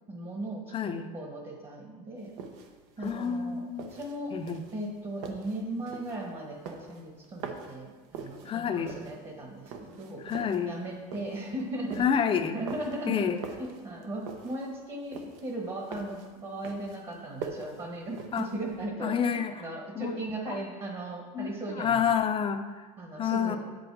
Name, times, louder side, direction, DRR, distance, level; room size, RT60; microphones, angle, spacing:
voice 1, 0.1-0.7 1.1-2.3 3.0-4.3 4.7-10.2 10.6-12.0 12.5-19.2 19.6-22.0 23.0-23.6, right 1 dB, 30° right, 0 dB, 1.4 m, -37 dB
voice 2, 0.7-1.1 3.0-3.9 4.3-4.6 8.4-9.0 10.2-10.8 12.0-12.6 13.1-13.4 18.3-18.5 19.0-20.2 20.5-20.6 21.3-22.9 23.1-23.6, left 7 dB, 30° left, 7 dB, 0.6 m, -29 dB
sound 1, 2.2-18.8, right 5 dB, 75° right, 1.0 m, -44 dB
7.8 x 5.3 x 4.8 m, 1.4 s
supercardioid pair, 115°, 18 cm